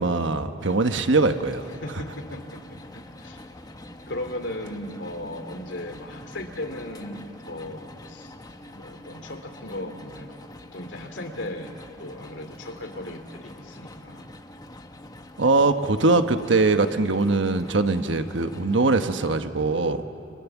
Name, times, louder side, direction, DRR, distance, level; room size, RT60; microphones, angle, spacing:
voice 1, 0.0-1.6 15.4-20.0, right 3 dB, 90° right, 8 dB, 1.2 m, -22 dB
sound 1, 0.6-19.4, left 1 dB, 20° left, 1.2 m, -45 dB
voice 2, 1.8-2.6 2.9-3.4 4.1-8.3 8.7-10.4 10.7-11.7 12.0-14.3, left 1 dB, 75° left, 5 dB, 2.9 m, -36 dB
29.5 x 27.0 x 7.3 m, 2.8 s
head